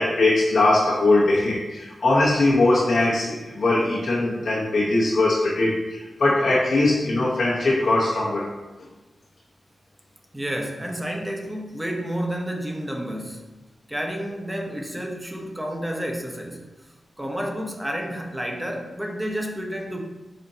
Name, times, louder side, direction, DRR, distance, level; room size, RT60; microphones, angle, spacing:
voice 1, 0.0-8.5, left 2 dB, 70° left, -8 dB, 0.9 m, -21 dB
voice 2, 10.3-13.4 13.9-16.7 17.2-20.0, equal, 10° right, 2 dB, 0.7 m, -30 dB
4.3 x 4.2 x 2.7 m, 1.1 s
cardioid pair, 70°, 0 cm